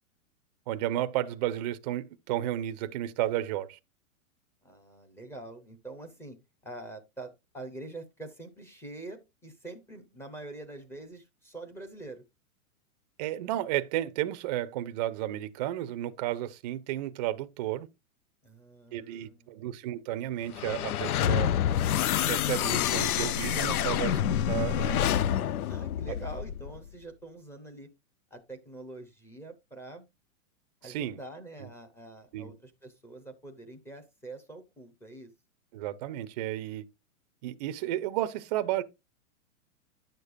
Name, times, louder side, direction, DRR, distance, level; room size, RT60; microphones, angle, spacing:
voice 1, 0.7-3.8 13.2-17.9 18.9-21.5 22.3-25.0 30.8-31.2 31.6-31.7 32.3-32.5 35.7-36.8 37.4-38.8, right 13 dB, 30° right, 0.5 m, -32 dB
voice 2, 4.6-6.4 6.6-12.2 18.4-19.6 25.7-27.9 28.3-30.0 30.8-35.3, right 2 dB, 5° left, 0.7 m, -45 dB
sound 1, 20.5-26.8, left 10 dB, 85° left, 0.6 m, -27 dB
10.5 x 6.6 x 2.5 m
hypercardioid pair, 150°, 43 cm